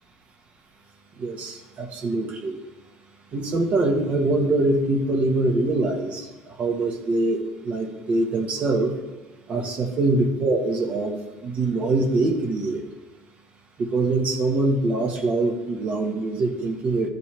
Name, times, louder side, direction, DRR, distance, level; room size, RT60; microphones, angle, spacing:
voice 1, 1.2-2.6 3.3-8.9 9.5-11.2 11.4-12.8 13.8-17.1, right 2 dB, 40° right, 2 dB, 1.5 m, -24 dB
13.5 x 6.8 x 3.4 m, 1.1 s
cardioid pair, 125°, 4 cm